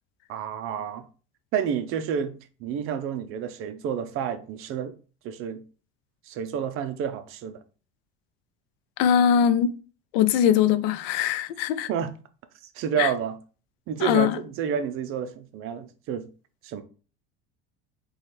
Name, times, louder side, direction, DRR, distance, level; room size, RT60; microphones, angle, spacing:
voice 1, 0.3-1.0 1.5-2.3 2.6-4.9 5.2-5.6 6.3-7.6 11.9-12.1 12.8-13.4 13.9-16.3 16.6-16.8, right 8 dB, 45° right, 0.5 m, -29 dB
voice 2, 9.0-9.7 10.1-11.9 13.0-13.1 14.0-14.4, left 9 dB, 80° left, 0.5 m, -21 dB
3.1 x 2.3 x 4.2 m
supercardioid pair, 120°, 29 cm